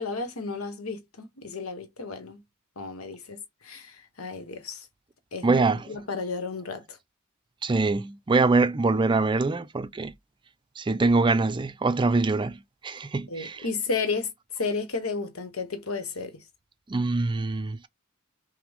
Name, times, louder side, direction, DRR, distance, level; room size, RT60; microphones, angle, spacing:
voice 1, 0.0-2.4 2.8-4.9 5.3-5.6 5.9-7.0 13.3-14.3 14.6-16.4, left 4 dB, 85° left, 1.2 m, -33 dB
voice 2, 5.4-5.9 7.6-10.1 10.8-13.6 16.9-17.8, right 3 dB, 20° right, 0.4 m, -24 dB
5.8 x 2.2 x 3.5 m
head